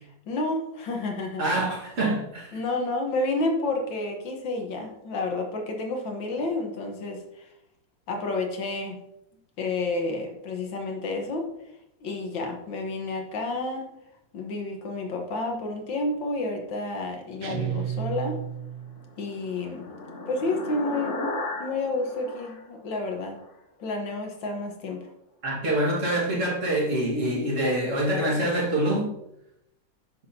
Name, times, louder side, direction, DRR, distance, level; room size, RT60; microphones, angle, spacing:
voice 1, 0.3-1.4 2.5-7.4 8.1-9.0 9.6-11.5 12.0-13.8 14.3-18.4 19.2-19.9 20.3-21.2 21.6-23.4 23.8-25.1, left 2 dB, 85° left, 1.9 m, -30 dB
voice 2, 1.4-2.6 25.4-29.1, right 1 dB, 40° right, 2.0 m, -25 dB
sound 1, 17.4-19.1, right 10 dB, 90° right, 1.4 m, -32 dB
sound 2, 18.7-23.5, left 2 dB, 45° left, 1.2 m, -36 dB
9.1 x 6.3 x 2.8 m
omnidirectional pair, 2.0 m